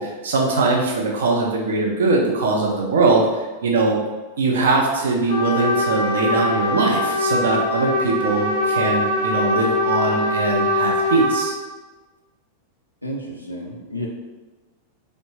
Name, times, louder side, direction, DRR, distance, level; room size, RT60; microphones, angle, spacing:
voice 1, 0.0-4.0 4.4-11.6, right 3 dB, 65° right, -1 dB, 0.4 m, -21 dB
Trumpet, 5.3-11.5, left 1 dB, 85° right, 0.8 m, -22 dB
voice 2, 13.0-14.1, equal, 90° left, -2 dB, 0.3 m, -31 dB
2.9 x 2.0 x 3.0 m, 1.2 s
figure-of-eight pair, 90°, 0 cm